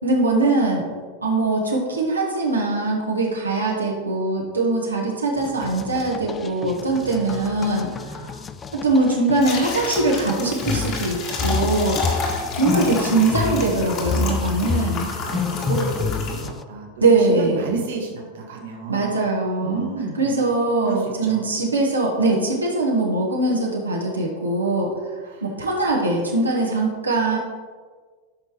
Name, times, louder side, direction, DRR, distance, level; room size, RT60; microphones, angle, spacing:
voice 1, 0.0-0.9 1.2-8.4 8.7-12.0 12.6-15.1 17.0-17.7 18.9-19.9 20.2-24.9 25.2-27.4, right 2 dB, 80° right, -3 dB, 1.5 m, -22 dB
sound 1, 5.4-16.6, left 5 dB, 20° left, 0.4 m, -29 dB
voice 2, 6.8-8.3 14.8-14.9 15.2-19.2 19.6-20.4 20.8-21.5 25.3-25.5, right 4 dB, 55° right, 0 dB, 1.5 m, -32 dB
sound 2, 9.4-16.4, left 4 dB, 40° left, 2.1 m, -31 dB
12.0 x 5.9 x 3.3 m, 1.5 s
figure-of-eight pair, 90°, 0 cm